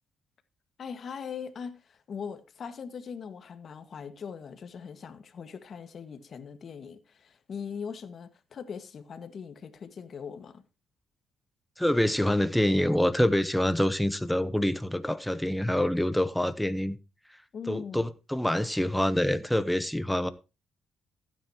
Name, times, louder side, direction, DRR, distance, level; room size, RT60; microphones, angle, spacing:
voice 1, 0.8-10.6 17.5-18.1, left 6 dB, 50° left, 1.7 m, -40 dB
voice 2, 11.8-17.0 17.7-20.3, left 1 dB, 5° left, 0.9 m, -26 dB
15.0 x 9.3 x 2.9 m
cardioid pair, 90°, 0 cm